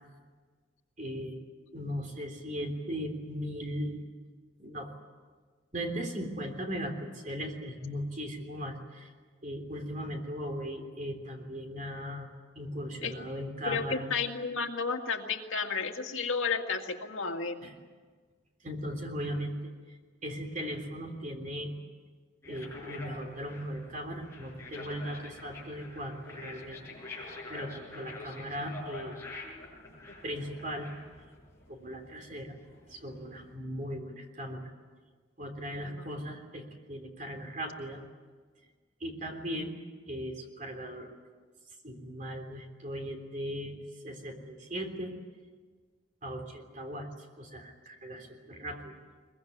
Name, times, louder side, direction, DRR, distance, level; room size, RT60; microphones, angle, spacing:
voice 1, 1.0-1.4 1.7-4.0 4.6-4.9 5.7-9.1 9.4-12.3 12.6-14.1 17.6-17.7 18.6-19.6 20.2-21.7 22.5-26.8 27.1-29.1 30.2-30.9 31.7-32.6 32.9-34.7 35.4-38.0 39.0-39.7 40.1-41.1 41.8-45.1 46.2-47.1 47.4-48.9, equal, 40° right, 4 dB, 3.5 m, -38 dB
voice 2, 13.7-17.6 35.8-36.1, left 5 dB, 85° left, 3 dB, 2.0 m, -32 dB
sound 1, 22.4-33.5, left 2 dB, 15° left, 6.2 m, -47 dB
22.5 x 21.0 x 9.5 m, 1.5 s
head